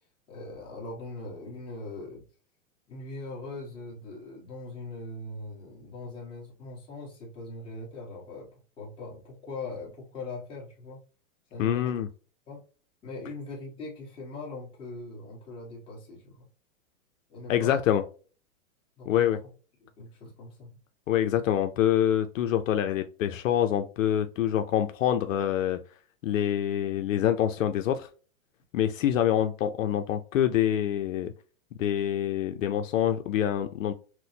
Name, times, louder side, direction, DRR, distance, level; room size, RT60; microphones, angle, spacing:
voice 1, 0.3-2.2 2.9-8.5 8.8-11.0 11.5-12.0 12.5-12.6 13.0-16.5 17.3-17.8 19.0-19.3 19.8-20.7, left 2 dB, 10° left, -4 dB, 1.2 m, -41 dB
voice 2, 11.6-12.1 17.5-18.0 19.1-19.4 21.1-25.8 26.2-28.1 28.7-31.3 31.8-33.9, left 10 dB, 65° left, 7 dB, 0.6 m, -26 dB
6.1 x 2.1 x 2.7 m, 0.36 s
supercardioid pair, 165°, 42 cm